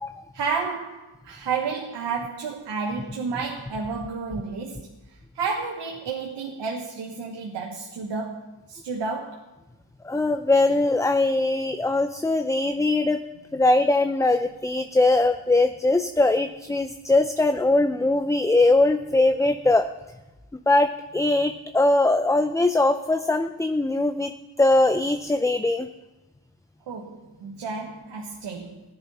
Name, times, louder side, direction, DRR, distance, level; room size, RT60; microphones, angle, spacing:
voice 1, 0.3-9.4 26.9-28.8, right 5 dB, 85° right, 1 dB, 1.4 m, -31 dB
voice 2, 10.0-13.2 13.5-19.9 20.7-24.3 24.6-25.9, left 2 dB, 10° left, 8 dB, 0.5 m, -21 dB
15.5 x 10.5 x 4.2 m, 1.1 s
cardioid pair, 85°, 41 cm